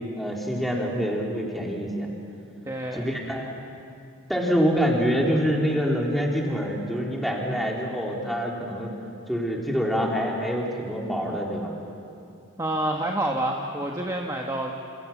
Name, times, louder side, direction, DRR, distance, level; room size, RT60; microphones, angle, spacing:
voice 1, 0.2-2.1 2.9-3.5 4.3-8.9 9.3-11.7, equal, ahead, -2 dB, 3.8 m, -26 dB
voice 2, 2.6-3.1 12.6-14.7, right 1 dB, 15° right, 0 dB, 1.5 m, -28 dB
29.5 x 28.0 x 7.3 m, 2.6 s
head